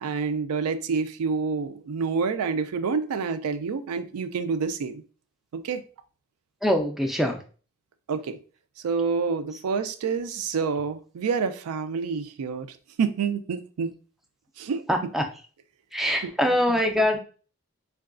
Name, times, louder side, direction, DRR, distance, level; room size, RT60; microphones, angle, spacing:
voice 1, 0.0-5.0 5.5-5.8 8.1-8.4 8.8-12.7 13.0-13.9 14.6-14.8 16.2-16.8, right 5 dB, 85° right, 10 dB, 0.4 m, -28 dB
voice 2, 6.6-7.4 14.9-15.3 15.9-17.2, equal, ahead, 4 dB, 0.3 m, -23 dB
4.6 x 2.2 x 2.4 m, 0.39 s
head